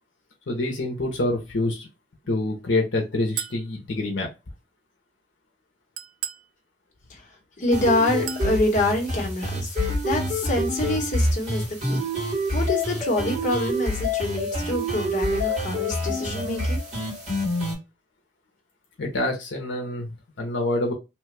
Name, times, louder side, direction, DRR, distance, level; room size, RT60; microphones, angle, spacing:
voice 1, 0.5-1.9 2.3-4.3 19.0-20.9, left 2 dB, 75° left, 0.7 m, -26 dB
Chink clink, 3.4-3.7 6.0-6.5 8.3-8.5, right 10 dB, 85° right, 0.4 m, -33 dB
voice 2, 7.6-12.0 12.5-16.8, left 2 dB, 40° left, 1.0 m, -26 dB
sound 1, 7.7-17.7, equal, 40° right, 1.8 m, -26 dB
2.9 x 2.3 x 3.2 m
head